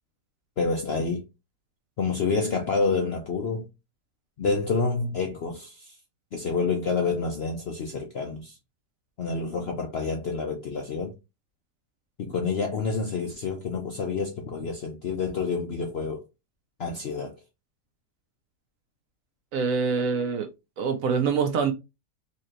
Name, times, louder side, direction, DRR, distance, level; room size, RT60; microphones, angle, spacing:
voice 1, 0.6-1.2 2.0-3.7 4.4-5.9 6.3-8.5 9.2-11.1 12.2-16.2 16.8-17.3, left 4 dB, 60° left, 0.6 m, -28 dB
voice 2, 19.5-20.5 20.8-21.7, right 5 dB, 65° right, 0.9 m, -25 dB
4.1 x 2.9 x 2.5 m
omnidirectional pair, 1.8 m